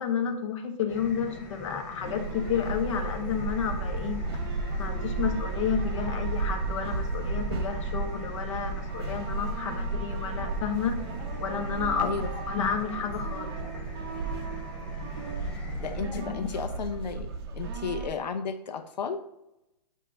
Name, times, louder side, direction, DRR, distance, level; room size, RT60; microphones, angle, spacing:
voice 1, 0.0-4.2 4.8-11.0 11.4-12.1 12.5-13.6 16.1-16.4, left 7 dB, 45° left, 5 dB, 0.9 m, -31 dB
sound 1, 0.9-16.0, left 2 dB, 5° left, 0.4 m, -44 dB
sound 2, 2.0-18.1, right 3 dB, 35° right, 0.7 m, -33 dB
voice 2, 12.0-12.3 15.8-17.3 17.6-19.2, left 5 dB, 85° left, 7 dB, 0.9 m, -33 dB
8.2 x 2.8 x 4.4 m, 0.88 s
hypercardioid pair, 170°, 21 cm